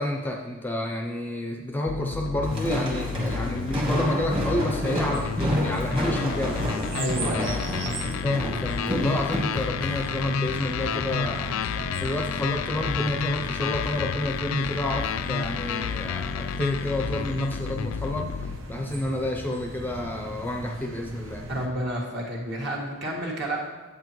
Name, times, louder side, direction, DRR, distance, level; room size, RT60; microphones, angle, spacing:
voice 1, 0.0-6.6 7.3-21.4, left 1 dB, 10° left, 1 dB, 0.5 m, -30 dB
sound 1, 1.9-18.6, left 6 dB, 70° left, 0.3 m, -31 dB
Walk footsteps, 2.4-9.6, equal, 25° right, 1.4 m, -30 dB
sound 2, 5.1-21.7, right 2 dB, 75° right, 0.9 m, -38 dB
voice 2, 6.9-7.6 21.5-23.6, right 1 dB, 55° right, -3 dB, 1.7 m, -30 dB
9.3 x 8.3 x 3.0 m, 1.2 s
head